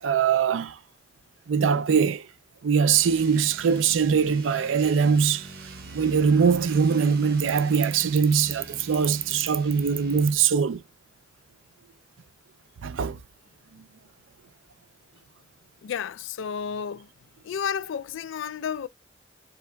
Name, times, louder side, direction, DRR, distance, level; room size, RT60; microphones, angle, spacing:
voice 1, 0.0-0.8 1.5-2.3 2.6-5.5 5.9-10.8 12.8-13.2, right 6 dB, 90° right, 0.4 m, -22 dB
sound 1, 2.9-10.5, right 3 dB, 55° right, 0.8 m, -43 dB
voice 2, 15.8-17.1 17.4-18.9, left 7 dB, 80° left, 0.4 m, -31 dB
3.5 x 2.7 x 2.2 m
head